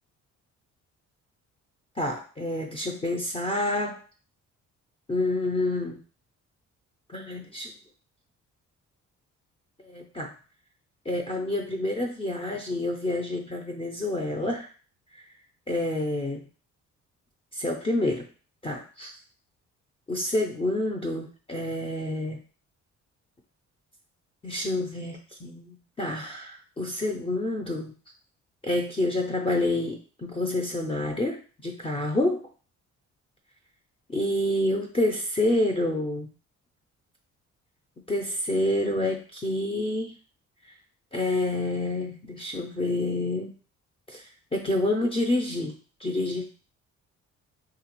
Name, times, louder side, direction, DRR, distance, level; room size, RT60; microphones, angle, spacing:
voice 1, 2.0-4.0 5.1-6.0 7.1-7.7 9.8-10.3 11.1-14.7 15.7-16.4 17.5-18.3 18.6-19.1 20.1-22.4 24.4-27.9 28.6-32.4 34.1-36.3 38.1-40.1 41.1-43.5 44.1-44.2 44.5-45.7 46.0-46.5, left 1 dB, 20° left, 0 dB, 0.4 m, -28 dB
2.8 x 2.3 x 2.9 m, 0.39 s
cardioid pair, 90°, 30 cm